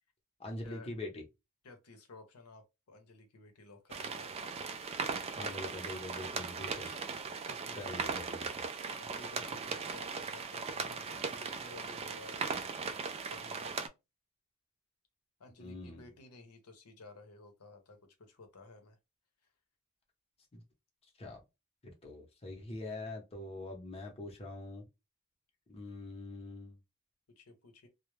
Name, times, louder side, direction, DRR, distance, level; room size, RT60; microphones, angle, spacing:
voice 1, 0.4-1.2 5.3-6.9 7.7-8.7 15.6-16.1 20.5-20.6 21.2-21.4 21.8-24.8 25.7-26.8, left 2 dB, 25° left, 0.7 m, -44 dB
voice 2, 1.6-4.5 6.8-7.0 7.5-8.2 9.0-12.5 13.2-13.8 15.4-19.0 27.4-27.9, left 3 dB, 85° left, 0.7 m, -55 dB
sound 1, 3.9-13.9, right 5 dB, 30° right, 0.3 m, -38 dB
2.2 x 2.0 x 3.0 m
head